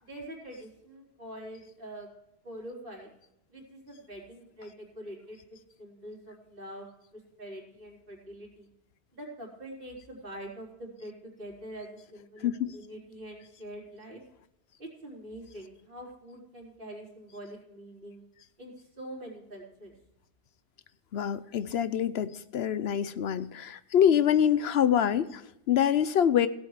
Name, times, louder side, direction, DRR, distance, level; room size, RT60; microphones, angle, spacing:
voice 1, 0.0-2.1 2.4-3.1 3.5-8.7 9.1-14.2 14.8-18.2 18.6-19.9 24.1-24.3, right 1 dB, 55° right, -3 dB, 4.1 m, -45 dB
voice 2, 12.4-12.8 21.1-26.5, left 9 dB, 70° left, 14 dB, 0.9 m, -25 dB
17.0 x 7.9 x 4.9 m, 0.82 s
omnidirectional pair, 1.1 m